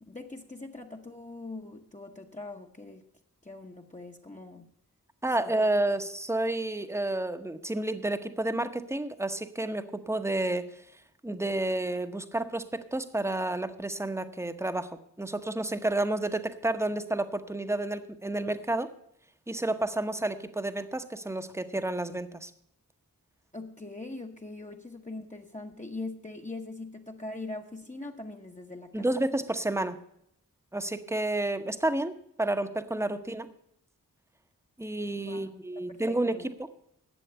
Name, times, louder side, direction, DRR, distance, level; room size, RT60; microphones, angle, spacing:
voice 1, 0.1-3.0 3.4-4.7 5.4-5.5 23.5-29.0 32.9-33.0 35.3-35.6 35.9-36.5, left 2 dB, 20° left, 1 dB, 1.0 m, -42 dB
voice 2, 5.2-10.8 11.2-18.9 19.5-22.5 28.9-30.0 30.7-33.5 34.8-36.7, right 2 dB, 10° right, 10 dB, 0.9 m, -30 dB
11.0 x 7.7 x 6.9 m, 0.74 s
wide cardioid pair, 55°, 34 cm